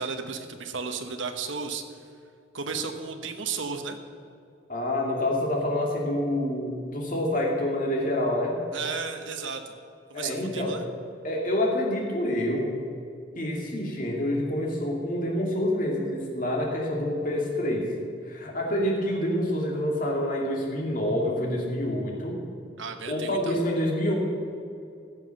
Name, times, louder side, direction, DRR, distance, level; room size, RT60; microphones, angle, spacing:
voice 1, 0.0-1.8 2.5-4.0 8.7-9.8 10.1-10.8 22.8-23.6, right 5 dB, 75° right, 6 dB, 1.2 m, -33 dB
voice 2, 4.7-8.5 10.1-10.7 11.2-12.8 13.4-17.9 18.3-22.4 23.1-24.1, left 1 dB, 45° left, -1 dB, 2.5 m, -27 dB
15.0 x 7.8 x 6.4 m, 2.5 s
head